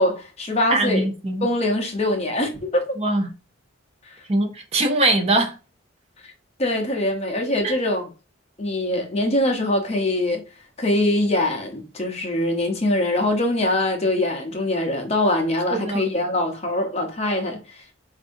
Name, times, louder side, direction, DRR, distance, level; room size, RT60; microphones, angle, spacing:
voice 1, 0.0-1.1 1.4-3.0 4.1-4.2 6.6-8.0 8.6-10.4 10.8-17.8, left 1 dB, 30° left, 0.8 m, -23 dB
voice 2, 0.7-1.5 3.0-3.3 4.3-5.5 7.6-7.8 15.7-16.1, right 2 dB, 30° right, 0.5 m, -22 dB
4.5 x 2.7 x 2.6 m
head